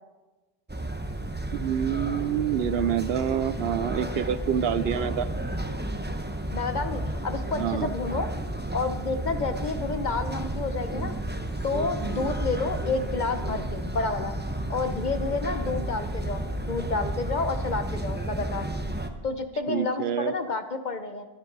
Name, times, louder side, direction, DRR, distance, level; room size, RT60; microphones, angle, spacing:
sound 1, 0.7-19.1, right 1 dB, 10° right, 0.8 m, -32 dB
voice 1, 1.5-5.3 7.6-7.9 19.7-20.3, right 8 dB, 75° right, 15 dB, 0.8 m, -27 dB
voice 2, 6.5-8.3 8.7-11.2 11.6-14.3 14.7-18.7 19.2-21.3, left 3 dB, 45° left, 8 dB, 1.1 m, -30 dB
22.5 x 9.6 x 4.0 m, 1.2 s
omnidirectional pair, 1.1 m